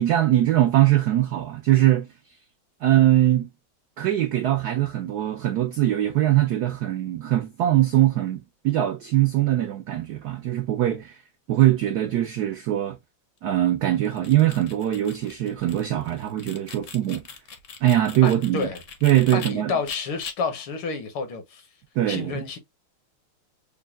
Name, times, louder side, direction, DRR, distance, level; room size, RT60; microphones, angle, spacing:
voice 1, 0.0-2.1 2.8-3.5 4.0-11.2 11.5-13.0 13.4-17.2 17.8-18.7 19.0-19.7 22.0-22.4, right 13 dB, 85° right, 0.8 m, -22 dB
sound 1, 14.0-19.5 19.9-20.3, left 6 dB, 55° left, 0.8 m, -41 dB
voice 2, 18.2-18.8 19.3-21.6 22.1-22.6, left 5 dB, 75° left, 1.9 m, -29 dB
6.4 x 2.3 x 2.3 m
omnidirectional pair, 2.3 m